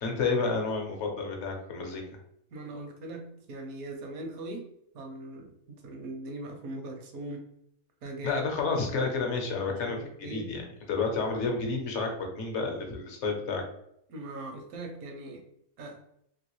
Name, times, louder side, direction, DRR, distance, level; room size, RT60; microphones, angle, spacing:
voice 1, 0.0-2.0 8.2-10.6 10.9-13.6, left 4 dB, 55° left, 2 dB, 0.9 m, -30 dB
voice 2, 2.5-4.7 4.9-7.5 8.0-9.1 9.7-10.5 14.1-15.4 15.8-16.0, right 2 dB, 70° right, 4 dB, 1.1 m, -40 dB
3.1 x 2.9 x 3.0 m, 0.76 s
omnidirectional pair, 1.6 m